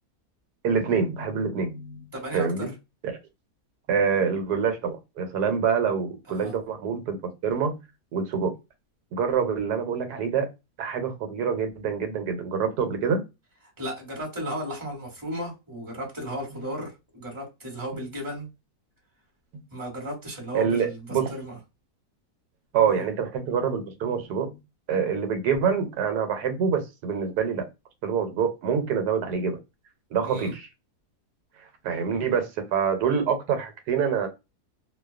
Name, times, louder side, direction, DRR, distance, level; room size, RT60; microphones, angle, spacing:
voice 1, 0.6-2.7 3.0-3.2 3.9-7.2 7.4-7.8 8.1-8.5 9.1-10.5 10.8-13.2 20.5-21.3 22.7-24.6 24.9-27.6 28.0-29.6 30.1-30.7 31.8-34.3, right 6 dB, 85° right, 1.2 m, -26 dB
voice 2, 2.1-2.7 6.3-6.5 13.8-18.5 19.7-21.6 22.9-23.0 30.2-30.5, equal, 15° right, 1.2 m, -35 dB
2.6 x 2.2 x 2.3 m
omnidirectional pair, 1.7 m